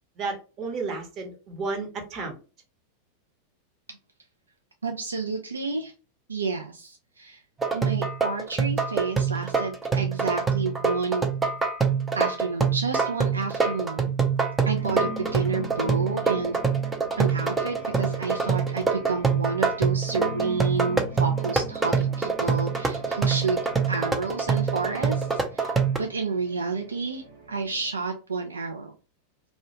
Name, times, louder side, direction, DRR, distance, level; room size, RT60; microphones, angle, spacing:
voice 1, 0.2-2.3, right 3 dB, 40° right, 2 dB, 0.9 m, -32 dB
voice 2, 4.8-5.9 6.3-7.4 7.7-11.3 12.1-14.1 14.6-16.6 17.2-23.6 23.9-25.7 26.0-28.9, right 4 dB, 80° right, 4 dB, 0.3 m, -30 dB
sound 1, 7.6-26.0, right 5 dB, 15° right, 0.4 m, -25 dB
sound 2, 14.7-28.0, right 2 dB, 65° right, 0.9 m, -42 dB
2.3 x 2.1 x 2.8 m, 0.33 s
figure-of-eight pair, 90°, 0 cm